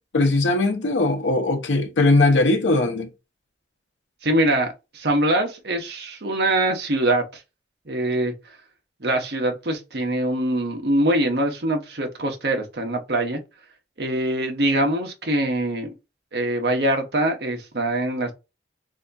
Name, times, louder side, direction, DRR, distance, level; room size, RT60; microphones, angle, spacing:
voice 1, 0.1-3.1, left 2 dB, 85° left, 0.7 m, -19 dB
voice 2, 4.2-7.4 7.9-8.3 9.0-13.4 14.0-15.9 16.3-18.3, right 1 dB, 60° right, 1.0 m, -23 dB
3.4 x 2.8 x 2.6 m
head